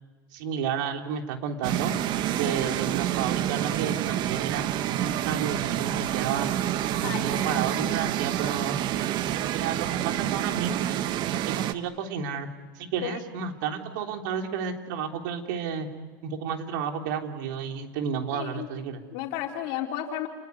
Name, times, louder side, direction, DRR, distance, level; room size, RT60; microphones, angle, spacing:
voice 1, 0.3-1.9 2.4-4.6 4.9-6.5 6.9-8.7 9.3-10.9 11.3-12.5 12.7-15.9 16.2-19.0, right 7 dB, 65° right, 4 dB, 3.4 m, -31 dB
sound 1, 1.6-11.7, right 12 dB, 45° right, 1.2 m, -28 dB
voice 2, 7.0-7.6 13.0-13.2 18.3-18.7 19.1-20.3, left 11 dB, 55° left, 2 dB, 4.1 m, -33 dB
30.0 x 20.5 x 9.5 m, 1.3 s
supercardioid pair, 115°, 11 cm